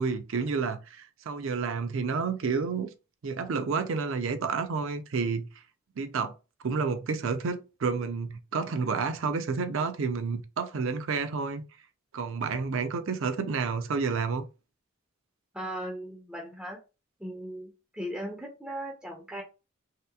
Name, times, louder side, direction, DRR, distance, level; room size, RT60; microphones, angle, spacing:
voice 1, 0.0-2.9 3.2-5.5 6.0-6.3 6.6-11.6 12.1-14.4, right 5 dB, 60° right, 0.4 m, -30 dB
voice 2, 15.5-16.8 17.2-19.4, equal, 5° right, 0.4 m, -38 dB
3.2 x 2.9 x 2.2 m
head